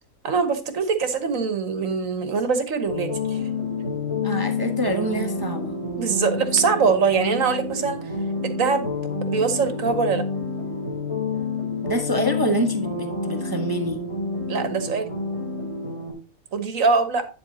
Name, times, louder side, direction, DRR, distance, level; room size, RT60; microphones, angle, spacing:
voice 1, 0.2-3.4 6.0-8.0 8.4-8.9 9.2-10.2 14.5-15.0 16.5-17.3, right 5 dB, 65° right, 9 dB, 1.7 m, -23 dB
sound 1, 2.9-16.1, left 4 dB, 20° left, 3.4 m, -28 dB
voice 2, 4.2-5.8 11.8-14.0, right 1 dB, 15° right, 5 dB, 1.0 m, -26 dB
9.6 x 7.7 x 2.8 m, 0.34 s
omnidirectional pair, 1.5 m